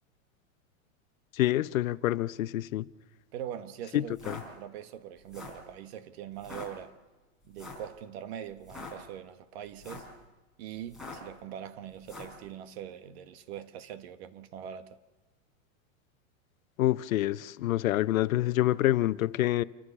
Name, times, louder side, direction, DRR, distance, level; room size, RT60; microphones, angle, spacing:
voice 1, 1.3-2.9 3.9-4.4 16.8-19.6, left 14 dB, 80° left, 0.8 m, -27 dB
voice 2, 3.3-6.9 7.4-10.0 10.6-15.0, right 10 dB, 50° right, 1.4 m, -42 dB
sound 1, 4.1-4.4 5.2-5.6 6.4-6.7 7.5-7.9 8.6-8.9 9.7-10.1 10.9-11.3 12.0-12.4, left 3 dB, ahead, 4.7 m, -44 dB
28.5 x 15.0 x 7.0 m
supercardioid pair, 165°, 41 cm